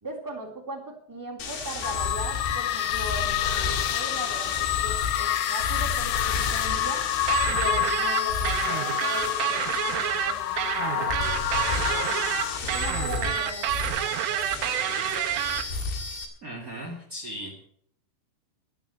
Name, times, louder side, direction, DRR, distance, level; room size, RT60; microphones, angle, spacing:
voice 1, 0.0-7.0 7.5-15.4, right 1 dB, 5° right, 1 dB, 1.7 m, -39 dB
sound 1, 1.4-16.3, left 4 dB, 55° left, 4.4 m, -33 dB
sound 2, 1.8-12.6, left 13 dB, 85° left, 2.4 m, -28 dB
sound 3, 7.3-15.6, right 13 dB, 80° right, 3.3 m, -28 dB
voice 2, 16.4-17.6, equal, 45° right, 0 dB, 1.0 m, -37 dB
12.5 x 12.0 x 6.8 m, 0.62 s
omnidirectional pair, 5.9 m